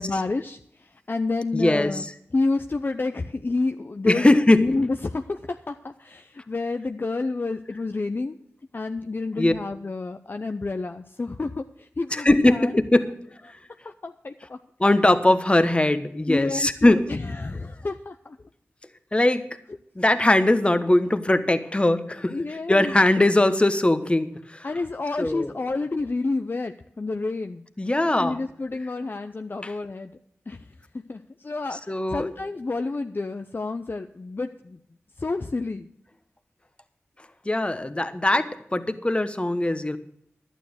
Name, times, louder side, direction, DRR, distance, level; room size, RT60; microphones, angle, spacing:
voice 1, 0.0-2.1 2.3-8.4 8.7-12.7 13.8-14.6 16.3-16.7 17.1-18.4 22.3-22.9 24.6-27.6 28.2-30.1 30.5-30.6 30.9-34.8 35.2-35.9, left 3 dB, 45° left, 7 dB, 0.6 m, -29 dB
voice 2, 1.5-2.1 4.1-4.7 9.4-9.5 12.1-13.1 14.8-17.1 19.1-19.6 19.9-22.4 22.7-24.7 25.2-25.5 27.8-28.4 29.6-29.7 31.7-32.3 37.4-40.0, left 1 dB, 20° left, 11 dB, 1.1 m, -20 dB
11.5 x 9.2 x 6.4 m, 0.69 s
cardioid pair, 45°, 5 cm